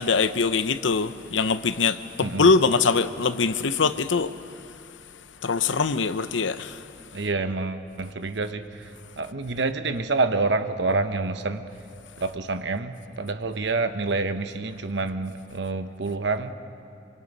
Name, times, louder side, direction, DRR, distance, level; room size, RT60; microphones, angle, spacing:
voice 1, 0.0-4.3 5.4-6.8, left 4 dB, 85° left, 0.8 m, -23 dB
voice 2, 7.1-11.7 12.2-16.5, right 3 dB, 70° right, 1.0 m, -27 dB
25.0 x 24.5 x 5.5 m
head